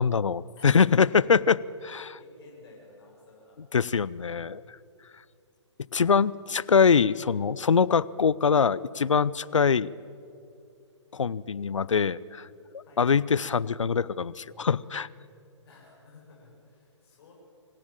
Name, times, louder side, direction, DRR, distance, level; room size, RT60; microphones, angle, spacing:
voice 1, 0.0-1.6 1.8-2.2 3.7-4.8 5.9-9.9 11.1-12.5 13.0-15.1, left 6 dB, 80° left, 20 dB, 0.7 m, -23 dB
voice 2, 0.6-1.4 2.2-3.6 9.4-9.6 12.8-13.0 15.6-17.3, left 3 dB, 55° left, -2 dB, 7.6 m, -53 dB
25.5 x 16.5 x 9.0 m, 2.5 s
figure-of-eight pair, 130°, 16 cm